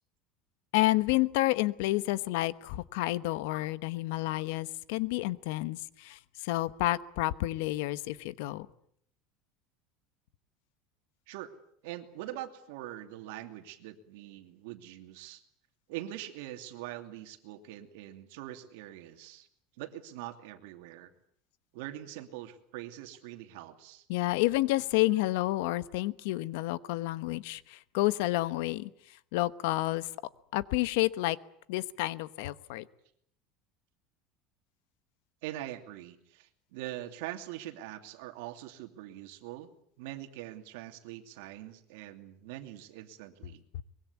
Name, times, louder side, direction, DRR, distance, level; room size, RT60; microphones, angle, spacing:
voice 1, 0.7-8.7 24.1-28.9 29.3-30.1 30.5-31.4 31.7-32.8, left 18 dB, 75° left, 16 dB, 1.0 m, -30 dB
voice 2, 11.8-15.4 15.9-19.5 19.8-21.1 21.7-24.1 35.4-39.7 40.0-43.6, right 14 dB, 75° right, 7 dB, 2.7 m, -43 dB
24.0 x 22.0 x 8.5 m, 0.67 s
cardioid pair, 165°, 0 cm